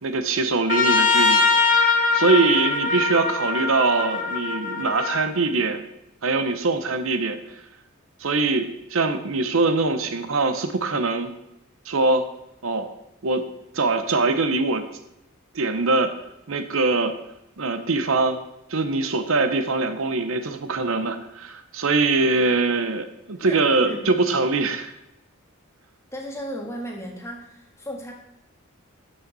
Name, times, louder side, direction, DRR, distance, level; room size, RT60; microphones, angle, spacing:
voice 1, 0.0-5.9 6.2-7.4 8.2-11.3 11.9-12.2 12.6-12.9 13.2-13.4 13.7-14.8 15.5-16.2 16.5-17.1 17.6-18.4 18.7-24.9, right 3 dB, 65° right, 9 dB, 0.8 m, -23 dB
Trumpet, 0.7-5.2, left 4 dB, 40° left, 1.0 m, -21 dB
voice 2, 23.4-24.0 26.1-28.1, equal, 15° left, 0 dB, 1.6 m, -35 dB
11.5 x 7.1 x 4.0 m, 0.86 s
head